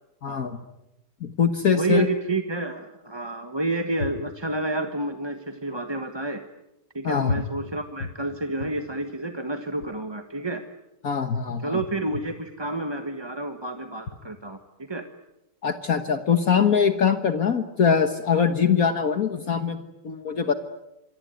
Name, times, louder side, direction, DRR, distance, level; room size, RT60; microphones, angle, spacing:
voice 1, 0.2-0.6 1.2-2.1 7.0-7.3 11.0-11.8 15.6-20.5, left 6 dB, 55° left, 8 dB, 1.7 m, -22 dB
voice 2, 1.7-6.4 6.9-10.6 11.6-15.0, right 2 dB, 15° right, 6 dB, 1.3 m, -30 dB
27.0 x 23.0 x 9.3 m, 0.91 s
omnidirectional pair, 1.9 m